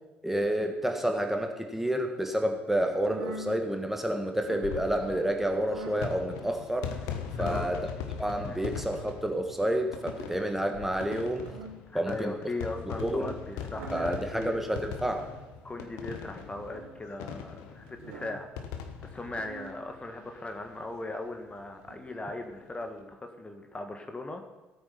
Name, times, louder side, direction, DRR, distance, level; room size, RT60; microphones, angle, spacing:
voice 1, 0.2-7.0 7.4-7.8 8.2-11.5 11.9-12.3 13.0-13.3 13.9-15.3, right 1 dB, 5° right, 4 dB, 1.6 m, -29 dB
sound 1, 2.9-3.6 4.3-4.7 5.6-6.1 7.1-7.5 8.5-9.0 10.1-10.5 11.2-11.9 12.5-12.9 13.5-14.2 15.0-15.5 16.4-17.0 17.9-18.5 19.1-19.8 20.5-21.0 21.8-21.9, right 3 dB, 65° right, 1.7 m, -46 dB
sound 2, 4.5-20.5 20.8-20.9 21.1-21.2 22.5-22.8, left 7 dB, 60° left, 1.2 m, -40 dB
voice 2, 7.4-7.7 8.4-8.6 11.9-14.6 15.6-18.5 19.0-24.4, left 2 dB, 20° left, 5 dB, 1.7 m, -38 dB
16.0 x 9.0 x 5.8 m, 1.1 s
figure-of-eight pair, 50°, 6 cm